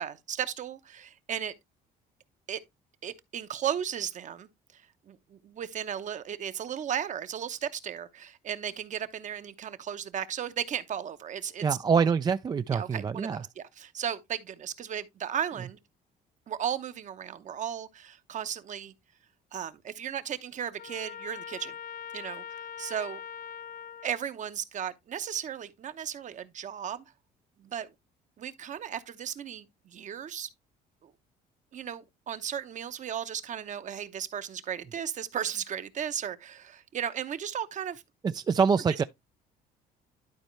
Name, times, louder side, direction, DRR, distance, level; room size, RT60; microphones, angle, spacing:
voice 1, 0.0-1.5 2.5-2.6 3.0-4.5 5.1-11.6 12.7-15.8 16.5-18.9 19.5-21.7 22.1-22.4 22.8-23.2 24.0-27.0 27.6-27.9 28.4-30.5 31.0-31.1 31.7-38.0 38.9-39.0, right 9 dB, 45° right, 0.9 m, -35 dB
voice 2, 11.6-13.4 38.2-39.0, right 6 dB, 25° right, 0.3 m, -25 dB
Trumpet, 20.8-24.2, left 8 dB, 50° left, 0.5 m, -42 dB
11.5 x 4.4 x 3.1 m
cardioid pair, 110°, 17 cm